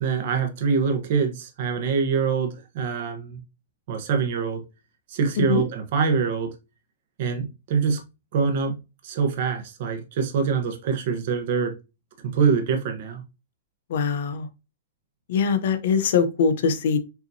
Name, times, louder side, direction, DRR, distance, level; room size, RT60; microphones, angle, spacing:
voice 1, 0.0-3.4 3.9-4.6 5.1-6.5 7.2-8.0 8.3-8.7 9.0-11.7 12.2-13.2, right 5 dB, 50° right, 1.0 m, -24 dB
voice 2, 13.9-14.5 15.3-17.0, left 6 dB, 60° left, 0.8 m, -22 dB
5.6 x 2.9 x 2.7 m
hypercardioid pair, 160°, 0 cm